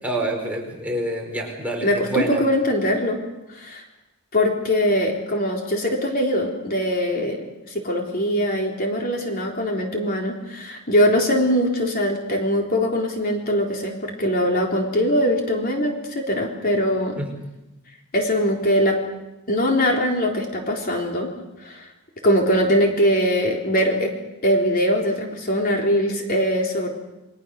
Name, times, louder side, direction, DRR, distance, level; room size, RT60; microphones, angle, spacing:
voice 1, 0.0-2.4 17.2-17.3, right 1 dB, 5° right, 0 dB, 4.8 m, -27 dB
voice 2, 1.8-3.2 3.5-3.8 4.3-17.2 18.1-19.0 19.5-21.3 21.6-21.9 22.2-24.2 24.4-26.9, equal, 40° left, 0 dB, 3.9 m, -22 dB
29.5 x 23.0 x 6.6 m, 0.97 s
head